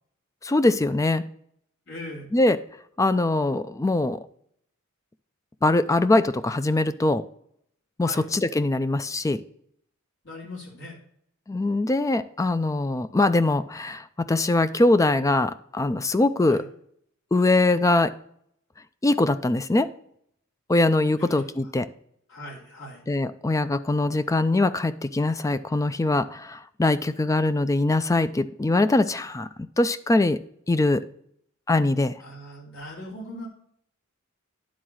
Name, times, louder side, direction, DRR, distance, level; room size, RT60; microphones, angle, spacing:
voice 1, 0.4-1.2 2.3-2.6 3.0-4.2 5.6-7.3 8.0-9.4 11.5-16.6 17.3-18.1 19.0-19.9 20.7-21.9 23.1-29.5 29.8-30.4 30.7-31.0 31.7-32.1, left 2 dB, 15° left, 12 dB, 0.4 m, -22 dB
voice 2, 1.9-2.3 8.0-8.3 10.2-11.0 16.5-16.6 21.1-21.4 22.3-23.0 32.2-33.5, left 1 dB, 65° left, -4 dB, 3.1 m, -39 dB
10.5 x 3.7 x 6.2 m, 0.68 s
head